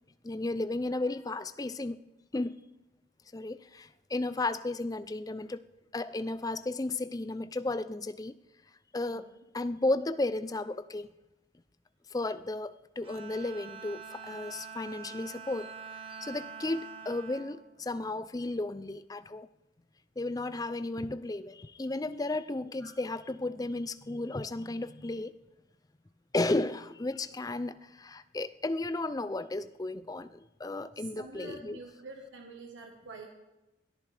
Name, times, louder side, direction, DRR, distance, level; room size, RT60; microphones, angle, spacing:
voice 1, 0.2-2.0 2.3-2.6 3.3-5.6 5.9-8.3 8.9-9.3 9.5-11.1 12.1-19.5 20.2-25.3 26.3-31.8, left 2 dB, 20° left, 13 dB, 0.4 m, -34 dB
Bowed string instrument, 13.0-18.6, right 6 dB, 30° right, 1.4 m, -46 dB
voice 2, 30.9-33.3, right 3 dB, 80° right, 1 dB, 1.4 m, -47 dB
22.0 x 14.0 x 3.4 m, 1.0 s
head